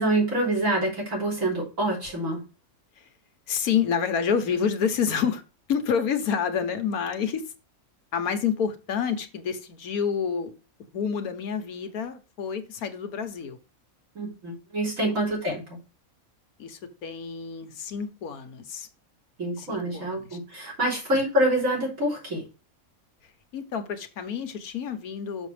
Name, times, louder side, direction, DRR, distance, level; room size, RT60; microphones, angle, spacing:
voice 1, 0.0-2.4 14.2-15.6 19.4-22.4, right 1 dB, 65° right, -4 dB, 3.8 m, -26 dB
voice 2, 3.5-5.4 5.7-7.5 8.1-10.5 10.9-13.6 15.0-15.1 16.6-18.9 19.6-20.4 21.1-21.2 23.5-25.5, left 7 dB, 85° left, 7 dB, 1.5 m, -28 dB
6.4 x 6.3 x 3.2 m, 0.32 s
omnidirectional pair, 1.5 m